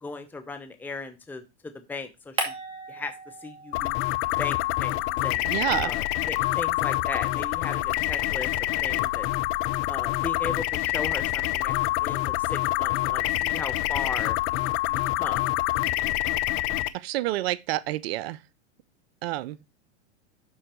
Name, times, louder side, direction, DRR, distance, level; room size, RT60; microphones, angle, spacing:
voice 1, 0.0-2.5 2.9-3.1 3.4-4.0 4.4-5.4 5.8-8.5 8.8-9.3 9.9-14.4 14.9-15.4, left 3 dB, 5° left, 0.8 m, -37 dB
sound 1, 2.4-4.1 4.4-6.8, right 2 dB, 15° right, 2.2 m, -38 dB
sound 2, 3.7-16.9, left 16 dB, 40° left, 0.6 m, -26 dB
voice 2, 5.4-5.9 16.9-18.4 19.2-19.6, right 16 dB, 60° right, 0.5 m, -28 dB
11.5 x 4.4 x 3.0 m
hypercardioid pair, 105°, 35 cm